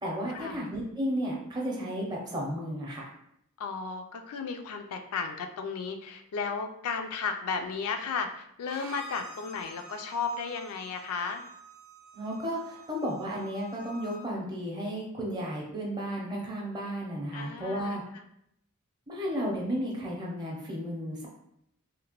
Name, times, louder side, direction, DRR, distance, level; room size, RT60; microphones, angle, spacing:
voice 1, 0.0-3.1 12.1-18.0 19.1-21.3, equal, 20° right, -3 dB, 0.6 m, -33 dB
voice 2, 3.6-11.4 17.3-18.3, left 5 dB, 80° left, 5 dB, 0.3 m, -34 dB
Bowed string instrument, 8.6-14.2, right 2 dB, 70° right, 0.6 m, -48 dB
2.8 x 2.1 x 2.8 m, 0.75 s
head